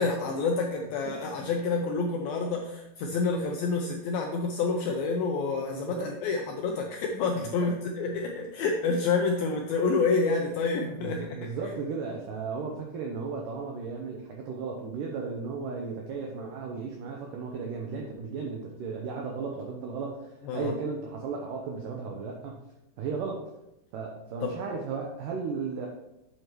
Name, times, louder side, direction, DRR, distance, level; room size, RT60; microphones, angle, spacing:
voice 1, 0.0-11.3 20.4-20.7 24.4-24.5, left 4 dB, 85° left, 2 dB, 2.1 m, -28 dB
voice 2, 5.6-6.1 7.3-7.7 11.0-22.6 23.0-23.5 23.9-25.9, right 5 dB, 90° right, 1 dB, 1.9 m, -35 dB
8.6 x 7.5 x 3.1 m, 0.88 s
omnidirectional pair, 5.0 m